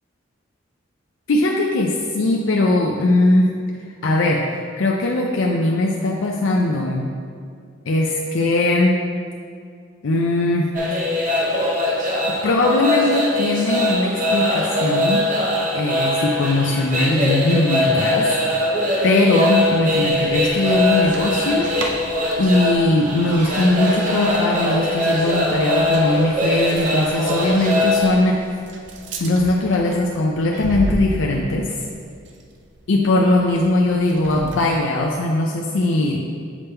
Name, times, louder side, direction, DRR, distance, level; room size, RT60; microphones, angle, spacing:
voice 1, 1.3-3.5 4.0-4.4 4.8-7.1 7.9-9.0 10.0-11.1 12.3-15.3 15.7-18.3 19.0-21.8 22.4-28.4 29.2-31.8 32.9-36.2, left 2 dB, 80° left, 0 dB, 0.5 m, -19 dB
sound 1, 10.8-28.1, left 1 dB, 45° right, 0.9 m, -21 dB
sound 2, 19.8-34.8, right 2 dB, 65° right, 0.6 m, -35 dB
7.2 x 3.5 x 4.4 m, 2.2 s
head